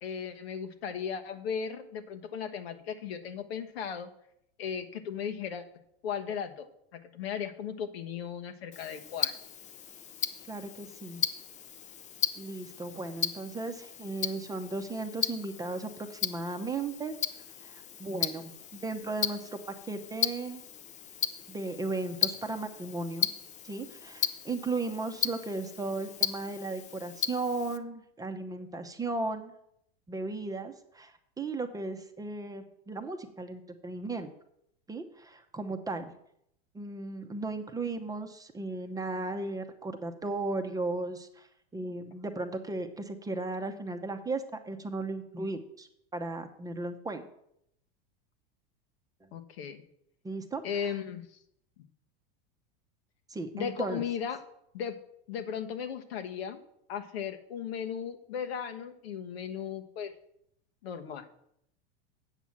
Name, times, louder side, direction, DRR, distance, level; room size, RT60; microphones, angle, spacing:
voice 1, 0.0-4.1 4.6-5.6 6.0-9.4 49.3-49.8 50.6-51.3 53.5-54.4 54.7-55.0 55.3-56.6 56.9-60.1 60.8-61.3, left 7 dB, 80° left, 8 dB, 1.2 m, -36 dB
Tick-tock, 8.7-27.8, left 8 dB, 25° left, 0.5 m, -36 dB
voice 2, 10.5-11.2 12.4-17.1 17.6-19.6 19.9-20.6 21.5-23.3 23.6-29.5 30.1-34.3 34.9-36.1 36.7-41.5 41.7-47.3 50.2-51.0 53.3-54.0, right 3 dB, 10° right, 6 dB, 0.8 m, -36 dB
8.2 x 6.1 x 7.2 m, 0.74 s
supercardioid pair, 125°, 30 cm